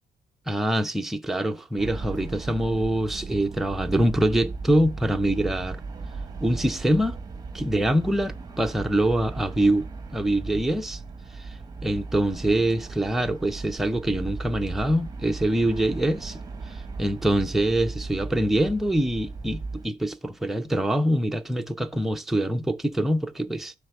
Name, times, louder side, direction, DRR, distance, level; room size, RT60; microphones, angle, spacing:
voice 1, 0.5-5.8 6.4-7.2 7.5-11.0 11.4-11.5 11.8-16.4 16.7-23.7, right 1 dB, ahead, 0.4 m, -24 dB
sound 1, 1.8-19.9, right 3 dB, 25° right, 0.8 m, -37 dB
6.3 x 4.1 x 5.9 m
cardioid pair, 160°, 17 cm